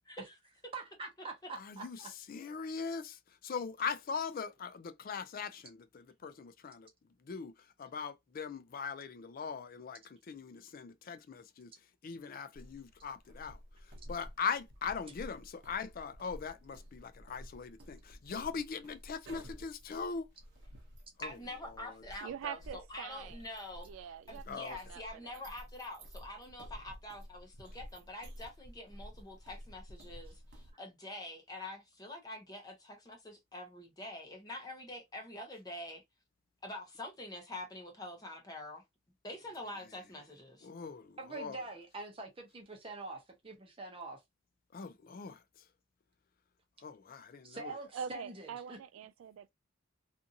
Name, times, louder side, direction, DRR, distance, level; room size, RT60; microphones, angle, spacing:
voice 1, 0.7-2.1 41.2-44.2 47.4-48.8, right 3 dB, 25° right, 0.7 m, -45 dB
voice 2, 1.6-2.0 2.3-6.9 7.2-7.5 7.8-11.7 12.0-13.6 14.1-20.3 21.2-21.3 24.5-24.8 40.6-41.6 44.7-45.4 46.8-47.7, left 5 dB, 45° left, 0.3 m, -40 dB
sound 1, 12.5-30.7, equal, 60° right, 0.8 m, -52 dB
voice 3, 21.2-23.9 24.3-36.0 36.6-38.8 39.2-40.7, left 1 dB, 20° left, 0.7 m, -46 dB
voice 4, 22.2-23.4 23.8-24.4 24.7-25.4 47.9-49.5, right 7 dB, 80° right, 0.3 m, -44 dB
2.5 x 2.5 x 2.6 m
head